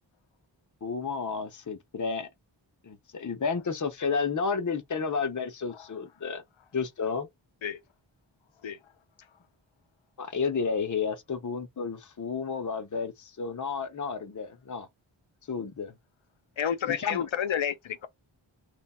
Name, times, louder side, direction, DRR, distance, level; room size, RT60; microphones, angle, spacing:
voice 1, 0.8-2.3 2.8-6.4 6.7-7.3 10.2-14.9 15.5-16.0 16.9-17.3, left 5 dB, 40° left, 0.7 m, -31 dB
voice 2, 16.6-18.1, left 8 dB, 75° left, 0.7 m, -30 dB
3.1 x 2.3 x 4.2 m
wide cardioid pair, 50°, 47 cm